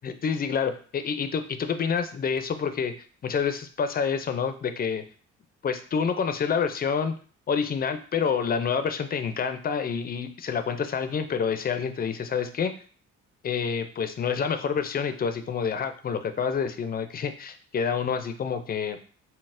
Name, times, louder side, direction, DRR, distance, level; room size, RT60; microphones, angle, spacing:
voice 1, 0.0-2.9 3.2-5.0 5.6-7.1 7.5-12.7 13.4-19.0, left 6 dB, 30° left, 9 dB, 0.4 m, -28 dB
3.9 x 2.0 x 2.5 m, 0.41 s
cardioid pair, 90°, 30 cm